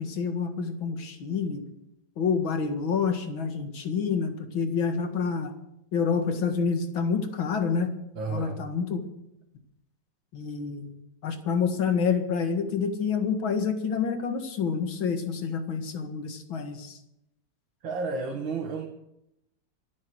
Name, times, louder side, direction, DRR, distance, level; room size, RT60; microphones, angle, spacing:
voice 1, 0.0-1.6 2.2-5.5 5.9-7.9 8.3-9.0 10.3-10.9 11.2-17.0, left 6 dB, 85° left, 7 dB, 2.6 m, -28 dB
voice 2, 8.2-8.6 17.8-18.9, right 4 dB, 80° right, 2 dB, 2.4 m, -31 dB
25.0 x 8.6 x 6.3 m, 0.82 s
omnidirectional pair, 2.1 m